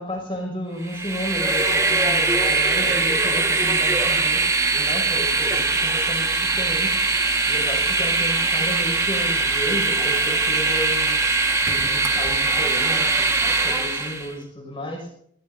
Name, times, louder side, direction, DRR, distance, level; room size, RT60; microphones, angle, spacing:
voice 1, 0.0-4.4 4.7-7.0 7.5-15.1, equal, 30° left, 1 dB, 5.6 m, -32 dB
Train, 0.8-14.3, right 3 dB, 15° right, 1.5 m, -21 dB
22.5 x 19.5 x 2.7 m, 0.66 s
head